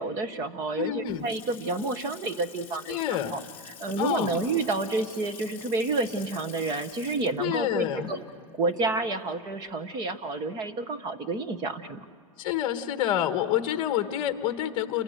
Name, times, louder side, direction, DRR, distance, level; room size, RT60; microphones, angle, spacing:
voice 1, 0.0-3.4 3.8-8.2 8.6-12.1, right 3 dB, 20° right, 10 dB, 1.0 m, -29 dB
voice 2, 0.8-1.2 2.9-3.4 4.0-4.3 7.4-8.1 12.4-15.0, left 11 dB, 25° left, 8 dB, 1.3 m, -28 dB
Water tap faucet / Sink (filling or washing) / Splash splatter, 0.8-9.7, left 8 dB, 10° left, 1.4 m, -47 dB
29.0 x 23.5 x 6.6 m, 2.2 s
supercardioid pair, 165°, 18 cm